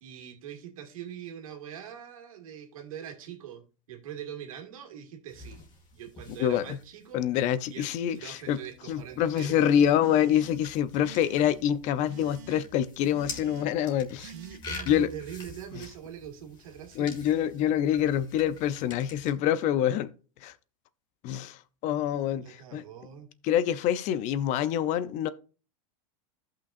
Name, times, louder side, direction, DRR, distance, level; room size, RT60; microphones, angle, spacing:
voice 1, 0.0-5.6 5.9-7.3 7.7-7.9 8.2-9.6 14.2-17.2 22.4-23.3, right 9 dB, 85° right, 2.1 m, -43 dB
sound 1, 5.3-19.3, left 3 dB, 25° left, 2.2 m, -47 dB
voice 2, 6.4-6.8 7.1-8.6 8.9-14.3 14.9-15.1 15.8-15.9 17.0-20.1 20.4-20.5 21.2-22.8 23.4-25.3, left 10 dB, 45° left, 0.6 m, -26 dB
sound 2, 10.0-10.7 11.0-11.6 12.1-12.6 13.1-13.7 14.2-14.6, right 6 dB, 55° right, 1.2 m, -47 dB
14.0 x 5.8 x 2.5 m
supercardioid pair, 120°, 17 cm